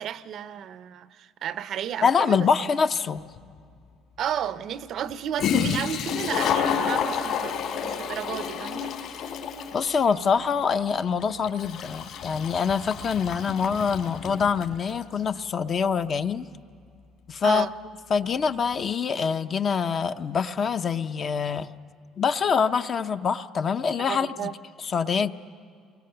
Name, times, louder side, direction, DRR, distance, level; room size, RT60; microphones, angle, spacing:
voice 1, 0.0-2.5 4.2-9.3 17.4-17.7 24.1-24.5, right 9 dB, 45° right, 14 dB, 0.5 m, -33 dB
voice 2, 2.0-3.2 9.7-16.5 17.3-17.7 18.1-21.7 22.2-24.5 24.8-25.3, left 6 dB, 30° left, 11 dB, 0.5 m, -25 dB
Toilet flush, 3.4-3.5 5.1-5.2 5.4-14.8, left 7 dB, 55° left, 3.3 m, -29 dB
29.0 x 22.5 x 6.8 m, 2.4 s
cardioid pair, 180°, 0 cm